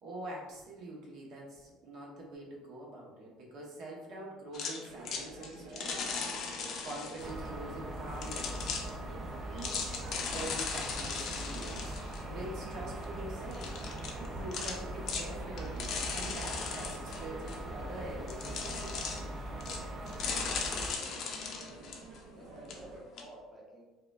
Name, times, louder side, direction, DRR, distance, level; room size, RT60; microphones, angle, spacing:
voice 1, 0.0-6.2 6.8-9.0 9.5-10.0 10.3-11.9 12.3-13.7 14.1-19.0, right 1 dB, 60° right, -2 dB, 0.9 m, -44 dB
sound 1, 4.5-7.3 8.2-8.9 9.6-12.2 12.7-12.8 13.0-13.1 13.5-14.3 14.5-14.8 15.1-15.3 15.6-17.6 18.3-19.2 19.6-19.8 20.1-22.4 22.7-22.8 23.2-23.3, left 5 dB, 55° left, 0.5 m, -38 dB
sound 2, 4.9-23.0, right 3 dB, 80° right, 0.6 m, -50 dB
sound 3, 7.2-21.0, right 1 dB, 35° right, 0.5 m, -41 dB
voice 2, 20.7-21.3 21.8-23.8, equal, 10° right, -5 dB, 0.8 m, -52 dB
4.6 x 2.3 x 2.3 m, 1.1 s
cardioid pair, 130°, 0 cm